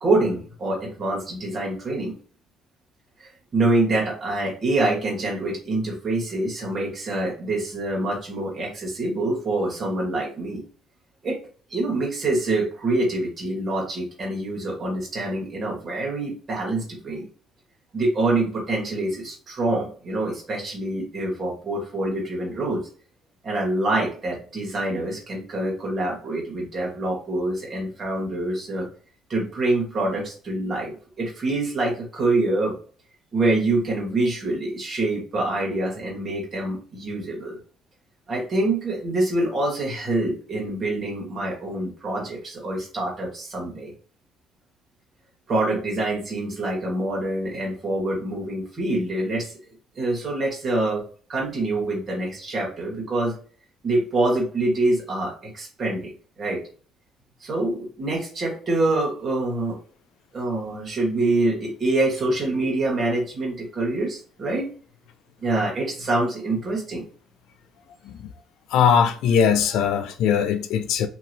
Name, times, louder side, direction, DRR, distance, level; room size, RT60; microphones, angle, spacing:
voice 1, 0.0-2.1 3.5-10.6 11.2-11.4 11.7-17.3 17.9-22.8 23.4-28.9 29.3-32.7 33.3-37.6 38.3-43.9 45.5-49.5 50.0-51.0 51.3-53.3 53.8-56.1 56.4-56.6 57.4-59.8 60.3-64.7 65.4-67.0, right 2 dB, 35° right, 1.4 m, -25 dB
voice 2, 68.7-71.1, left 7 dB, 75° left, 0.3 m, -20 dB
3.0 x 2.7 x 2.6 m
cardioid pair, 130°, 0 cm